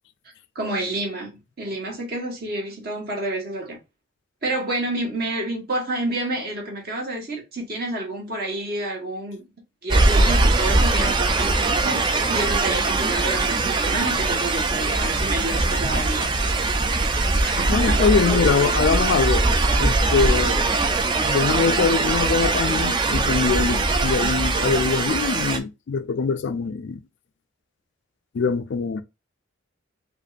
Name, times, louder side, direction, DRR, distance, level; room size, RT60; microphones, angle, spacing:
voice 1, 0.5-3.8 4.4-9.4 9.8-16.7 17.4-18.8, right 1 dB, 45° right, 1.5 m, -29 dB
sound 1, 9.9-25.6, right 3 dB, 20° right, 0.4 m, -21 dB
voice 2, 17.6-19.4 19.8-20.7 21.2-27.0 28.3-29.0, left 5 dB, 55° left, 0.3 m, -23 dB
5.1 x 2.5 x 2.5 m
head